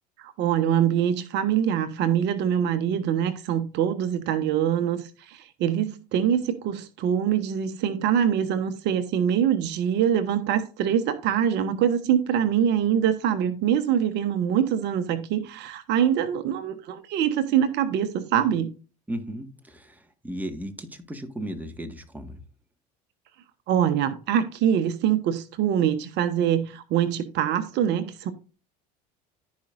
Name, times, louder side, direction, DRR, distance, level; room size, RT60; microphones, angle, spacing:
voice 1, 0.2-18.7 23.7-28.3, right 9 dB, 60° right, 1.1 m, -24 dB
voice 2, 19.1-22.4, equal, 10° right, 1.7 m, -35 dB
14.5 x 5.3 x 2.6 m
hypercardioid pair, 70°, 21 cm